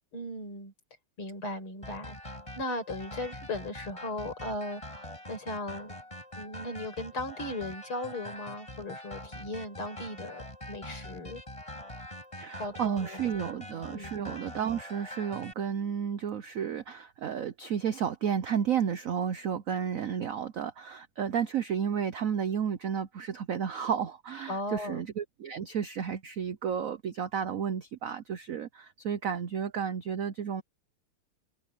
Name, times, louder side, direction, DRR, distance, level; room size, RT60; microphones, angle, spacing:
voice 1, 0.1-0.7 1.2-2.2 2.5-5.9 6.4-11.4 12.6-13.2 13.9-14.1 24.5-25.0, left 1 dB, 75° left, 7.0 m, -37 dB
sound 1, 1.8-15.5, left 1 dB, 15° left, 6.9 m, -44 dB
voice 2, 12.4-30.6, right 8 dB, 85° right, 0.7 m, -32 dB
omnidirectional pair, 2.4 m